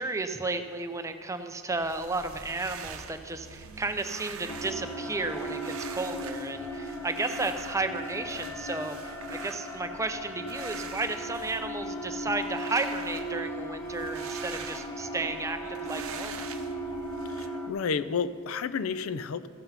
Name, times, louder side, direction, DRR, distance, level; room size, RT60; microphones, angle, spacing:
voice 1, 0.0-16.5, right 3 dB, 15° right, 8 dB, 0.4 m, -33 dB
sound 1, 1.7-17.5, right 6 dB, 80° right, 0.7 m, -44 dB
sound 2, 4.5-17.7, equal, 15° left, 0.9 m, -37 dB
voice 2, 17.4-19.5, left 5 dB, 80° left, 14 dB, 0.4 m, -31 dB
14.5 x 5.8 x 5.6 m, 2.1 s
head